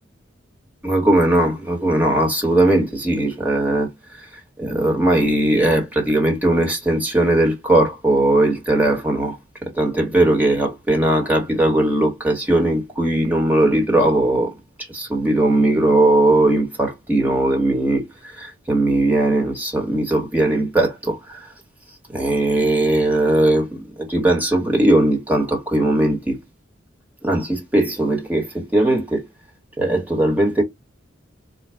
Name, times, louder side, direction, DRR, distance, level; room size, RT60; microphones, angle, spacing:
voice 1, 0.8-3.9 4.6-9.4 9.6-14.5 14.9-18.1 18.4-21.4 22.1-26.4 27.2-29.2 29.8-30.6, right 1 dB, 10° right, 1.2 m, -19 dB
3.9 x 2.2 x 3.3 m
head